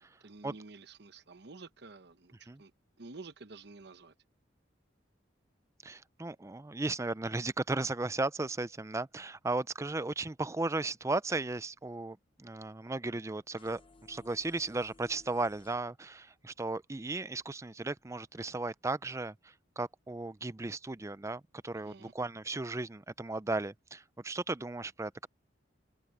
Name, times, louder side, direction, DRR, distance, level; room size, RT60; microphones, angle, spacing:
voice 1, 0.0-2.7 3.0-4.1 21.7-22.1, right 3 dB, 60° right, 1.0 m, -50 dB
voice 2, 5.8-13.8 14.1-25.3, right 2 dB, 15° right, 0.5 m, -35 dB
sound 1, 13.6-15.8, left 3 dB, 30° left, 0.9 m, -59 dB
open air
head